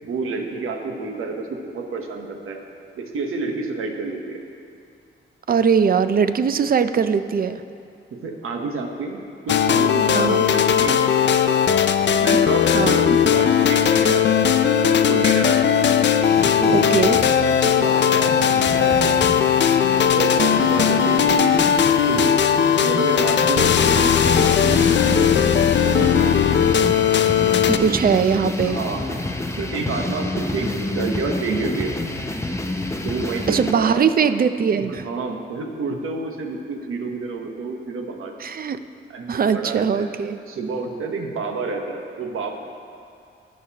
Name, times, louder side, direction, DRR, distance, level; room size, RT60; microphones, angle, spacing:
voice 1, 0.0-2.6 3.0-4.4 8.2-11.6 12.2-14.4 14.8-15.8 16.6-17.1 17.5-19.2 19.8-21.6 22.1-22.4 22.7-26.7 27.7-28.1 28.6-29.1 29.6-32.0 33.0-34.0 34.8-38.3 39.1-40.1 40.5-42.5, right 4 dB, 85° right, 3 dB, 1.1 m, -29 dB
voice 2, 5.5-7.6 10.1-10.5 12.7-13.0 16.7-17.2 27.7-28.8 33.5-35.0 38.4-38.8 39.3-40.4, right 6 dB, 45° right, 11 dB, 0.5 m, -20 dB
sound 1, 9.5-27.8, left 8 dB, 60° left, 0.4 m, -18 dB
sound 2, 16.2-33.7, left 2 dB, 15° left, 0.6 m, -29 dB
19.5 x 6.5 x 2.9 m, 2.4 s
cardioid pair, 100°, 21 cm